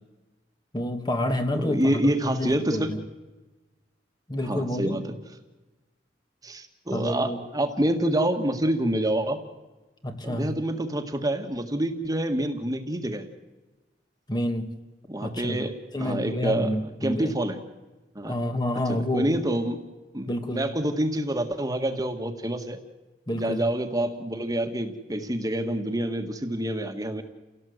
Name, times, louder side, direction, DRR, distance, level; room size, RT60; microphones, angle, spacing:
voice 1, 0.7-3.0 4.3-5.0 6.9-7.5 10.0-10.6 14.3-14.8 15.2-15.6 15.9-17.3 18.3-19.3 20.3-20.8 23.3-23.6, left 1 dB, 25° left, 1.6 m, -29 dB
voice 2, 1.5-2.9 4.5-5.1 6.4-9.4 10.2-13.3 15.1-16.7 17.0-17.6 18.1-18.3 18.9-19.8 20.1-22.8 23.3-27.2, right 1 dB, 20° right, 1.7 m, -27 dB
29.5 x 17.5 x 8.0 m
head